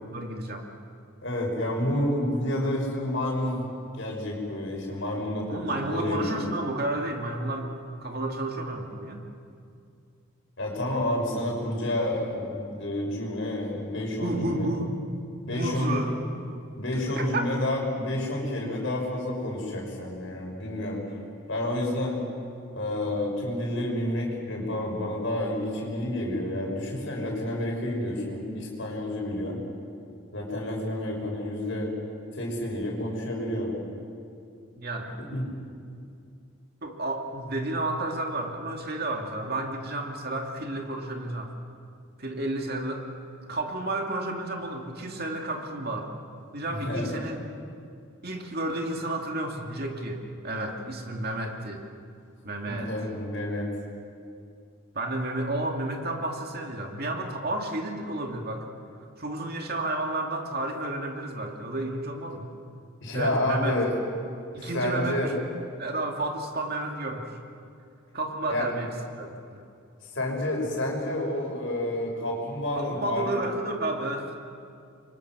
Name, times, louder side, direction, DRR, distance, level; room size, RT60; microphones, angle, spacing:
voice 1, 0.1-0.7 5.5-9.2 14.2-15.0 15.5-16.1 16.9-17.5 34.8-35.1 36.8-41.5 42.2-43.1 43.4-46.1 46.5-47.4 48.2-51.9 52.4-52.9 54.9-58.7 59.2-62.5 63.1-63.8 64.5-65.3 65.8-67.3 68.1-68.9 69.2-69.6 72.7-74.3, right 2 dB, 45° right, 2 dB, 2.5 m, -31 dB
voice 2, 1.2-3.6 3.9-6.4 10.6-14.7 15.4-16.0 16.8-21.0 21.5-22.2 22.7-29.6 30.3-31.9 32.3-33.8 35.3-35.5 46.7-47.1 52.7-53.7 63.0-63.9 64.5-65.3 68.5-68.6 70.0-73.3, left 1 dB, 60° left, -1 dB, 6.2 m, -29 dB
28.0 x 24.0 x 6.2 m, 2.4 s
head